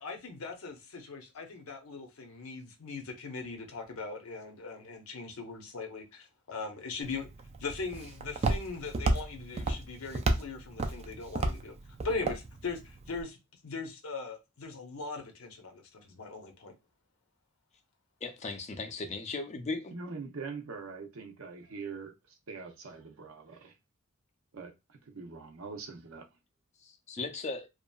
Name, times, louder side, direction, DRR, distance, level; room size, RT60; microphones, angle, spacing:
voice 1, 0.0-7.3 7.6-11.7 12.0-13.4 13.6-16.7, left 4 dB, 80° left, 0.7 m, -40 dB
Walk footsteps, 7.0-13.2, right 2 dB, 30° right, 0.3 m, -33 dB
voice 2, 18.2-19.9 26.8-27.7, left 3 dB, 35° left, 0.5 m, -37 dB
voice 3, 19.9-23.7 24.5-26.3, right 4 dB, 70° right, 0.6 m, -43 dB
2.8 x 2.4 x 2.2 m
head